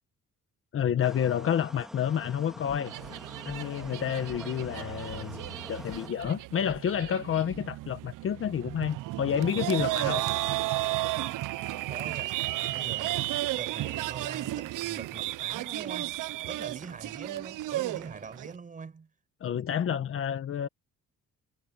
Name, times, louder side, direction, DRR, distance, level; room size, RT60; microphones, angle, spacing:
voice 1, 0.7-2.9 3.4-5.4 5.7-10.2 19.4-20.7, left 9 dB, 45° left, 1.1 m, -29 dB
sound 1, 1.0-6.1, equal, ahead, 1.8 m, -46 dB
sound 2, 2.7-3.2 3.5-4.0 4.3-4.8 5.1-5.6 5.9-6.4 6.7-7.2 7.5-7.6, left 11 dB, 75° left, 2.6 m, -49 dB
sound 3, 2.9-18.5, right 17 dB, 85° right, 0.6 m, -33 dB
voice 2, 11.7-16.1 16.5-19.1, right 5 dB, 25° right, 5.8 m, -43 dB
cardioid pair, 175°, 31 cm